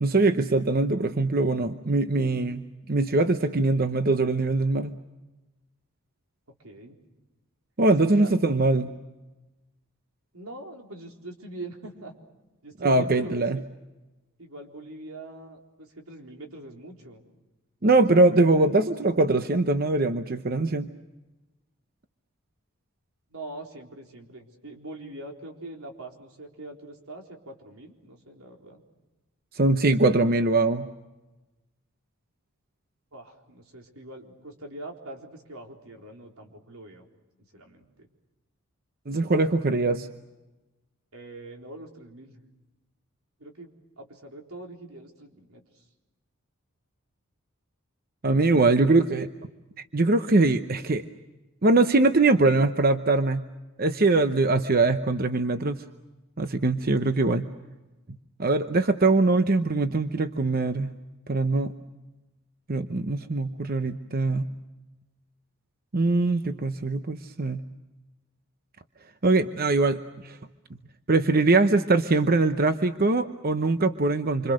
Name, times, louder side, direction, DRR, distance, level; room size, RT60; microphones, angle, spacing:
voice 1, 0.0-4.9 7.8-8.9 12.8-13.6 17.8-20.9 29.5-30.9 39.1-40.1 48.2-49.3 49.9-51.0 51.6-53.4 53.8-55.8 56.4-57.5 58.4-60.9 61.3-61.7 62.7-64.5 65.9-67.6 69.2-70.4 71.1-74.5, right 2 dB, 45° right, 9 dB, 0.9 m, -22 dB
voice 2, 6.6-7.0 8.1-8.3 10.3-12.1 12.6-13.6 14.4-17.2 17.8-18.9 23.3-28.8 33.1-37.0 37.5-38.1 41.1-42.4 43.4-45.8 63.1-63.6, right 2 dB, 90° right, 2 dB, 4.0 m, -43 dB
27.5 x 26.0 x 6.4 m, 1.1 s
head